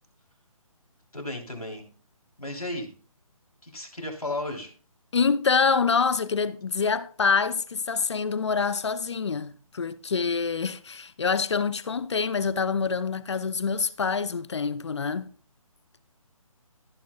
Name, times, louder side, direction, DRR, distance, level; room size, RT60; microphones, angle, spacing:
voice 1, 1.1-1.8 2.4-2.9 3.6-4.7, left 1 dB, 90° left, 3.3 m, -34 dB
voice 2, 5.1-15.3, left 5 dB, 50° left, 0.6 m, -26 dB
15.0 x 9.1 x 2.3 m
figure-of-eight pair, 145°, 18 cm